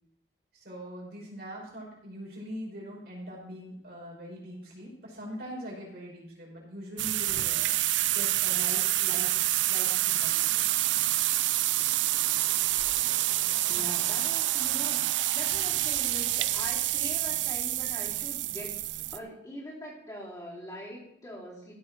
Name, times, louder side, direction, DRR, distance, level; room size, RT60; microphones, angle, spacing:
voice 1, 0.6-7.7 8.1-9.3 9.7-10.7, equal, 60° right, -3 dB, 5.7 m, -42 dB
sound 1, 7.0-19.2, right 15 dB, 90° right, 0.5 m, -27 dB
voice 2, 13.7-18.8 19.1-21.7, equal, 20° left, -7 dB, 4.4 m, -42 dB
15.5 x 8.1 x 4.4 m, 0.78 s
head